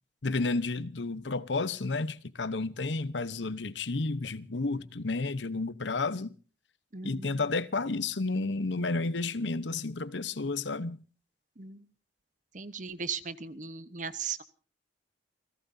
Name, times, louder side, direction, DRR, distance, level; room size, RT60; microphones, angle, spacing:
voice 1, 0.2-6.3 7.0-11.0, left 3 dB, 75° left, 0.9 m, -31 dB
voice 2, 6.9-7.4 11.6-11.9 12.5-14.4, right 6 dB, 45° right, 1.0 m, -38 dB
29.0 x 16.0 x 2.7 m
head